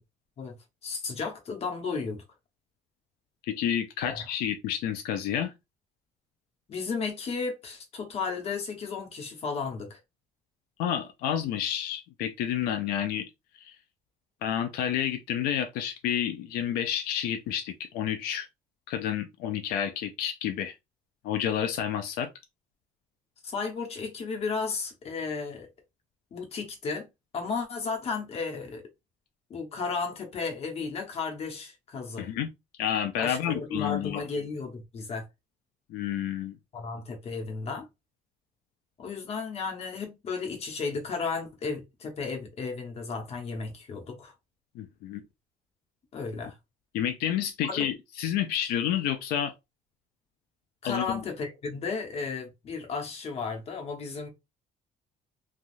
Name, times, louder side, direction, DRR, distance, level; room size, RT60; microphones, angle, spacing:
voice 1, 0.8-2.2 4.0-4.3 6.7-10.0 23.4-25.7 26.3-27.1 27.3-28.8 29.5-32.3 33.2-35.2 36.7-37.9 39.0-44.3 46.1-46.5 47.6-47.8 50.8-54.3, left 4 dB, 45° left, 1.0 m, -34 dB
voice 2, 3.5-5.5 10.8-13.3 13.5-13.8 14.4-18.5 18.9-20.8 21.2-22.3 32.2-32.5 32.8-34.2 35.9-36.6 44.8-45.2 46.9-49.5 50.8-51.2, left 10 dB, 85° left, 0.4 m, -30 dB
3.3 x 2.3 x 2.6 m
cardioid pair, 130°, 15 cm